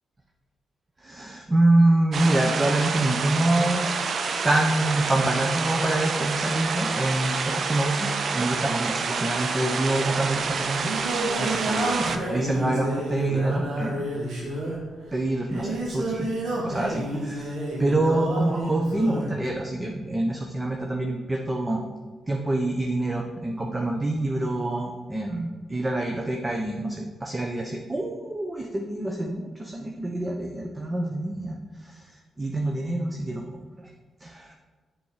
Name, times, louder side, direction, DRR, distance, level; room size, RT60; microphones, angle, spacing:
voice 1, 1.0-3.8 4.4-10.9 11.4-13.9 15.1-16.3 16.6-21.8 22.3-31.6 31.8-32.0 32.4-33.9 34.2-34.5, right 2 dB, 25° right, 1 dB, 0.9 m, -26 dB
sound 1, 2.1-12.2, right 5 dB, 60° right, 0.6 m, -28 dB
Singing, 10.3-19.4, right 1 dB, 75° right, 2.0 m, -30 dB
6.9 x 4.6 x 5.0 m, 1.3 s
supercardioid pair, 55°, 0 cm